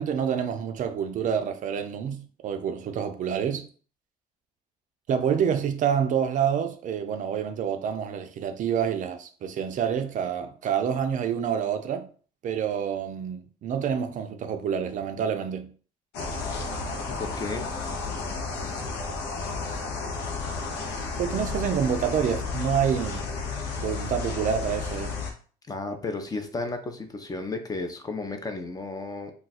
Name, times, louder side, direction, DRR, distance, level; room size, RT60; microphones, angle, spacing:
voice 1, 0.0-3.7 5.1-12.1 12.4-15.7 21.2-23.3 23.8-25.2, right 8 dB, 50° right, 0.4 m, -27 dB
sound 1, 16.1-25.3, left 4 dB, 85° left, 0.7 m, -32 dB
voice 2, 17.1-17.7 25.7-29.3, left 3 dB, 20° left, 0.5 m, -33 dB
2.3 x 2.3 x 4.0 m
cardioid pair, 110°, 17 cm